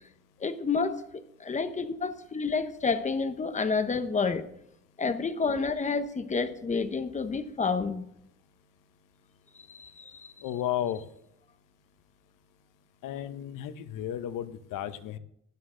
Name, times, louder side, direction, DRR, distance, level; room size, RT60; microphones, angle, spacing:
voice 1, 0.4-1.0 1.4-4.4 5.0-8.1 9.7-10.3, left 4 dB, 25° left, 0.9 m, -29 dB
voice 2, 10.4-11.0 13.0-15.2, left 11 dB, 85° left, 0.9 m, -33 dB
16.0 x 11.0 x 3.8 m
cardioid pair, 140°, 31 cm